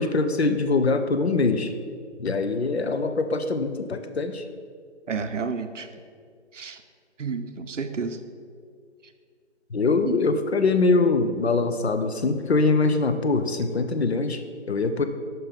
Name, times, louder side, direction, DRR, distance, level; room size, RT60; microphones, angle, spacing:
voice 1, 0.0-1.7 2.2-4.4 9.7-15.0, left 3 dB, 60° left, 8 dB, 0.6 m, -23 dB
voice 2, 5.1-5.9 6.5-6.8 7.2-8.2 10.0-10.2, right 5 dB, 80° right, 9 dB, 0.6 m, -30 dB
5.7 x 5.3 x 3.8 m, 2.1 s
figure-of-eight pair, 160°, 36 cm